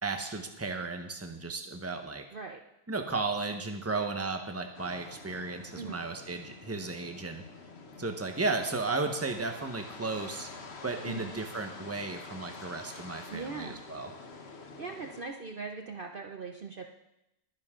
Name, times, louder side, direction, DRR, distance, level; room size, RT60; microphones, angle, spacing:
voice 1, 0.0-2.3 2.9-7.4 8.0-10.5 10.8-14.1, right 3 dB, 10° right, 5 dB, 1.1 m, -34 dB
sound 1, 4.7-15.2, left 4 dB, 50° left, 1.5 m, -47 dB
voice 2, 13.3-13.8 14.8-16.9, right 4 dB, 45° right, 3 dB, 0.9 m, -40 dB
21.5 x 10.5 x 3.8 m, 0.87 s
omnidirectional pair, 1.4 m